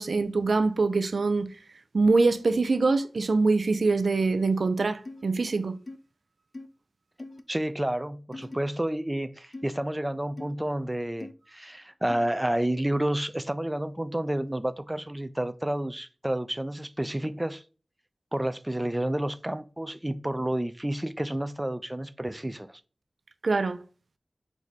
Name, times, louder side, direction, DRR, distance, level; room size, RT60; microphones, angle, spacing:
voice 1, 0.0-1.5 1.9-5.8 23.4-23.8, right 3 dB, 80° right, 0.4 m, -24 dB
sound 1, 5.1-5.2 5.9-6.0 6.5-6.7 7.2-7.4 8.3-8.6 9.5-9.7 10.4-10.5 11.2-11.3 12.1-12.3, left 2 dB, 50° left, 0.5 m, -41 dB
voice 2, 7.5-17.6 18.3-22.8, right 1 dB, 20° right, 0.4 m, -30 dB
4.6 x 2.6 x 4.1 m
wide cardioid pair, 45°, 0 cm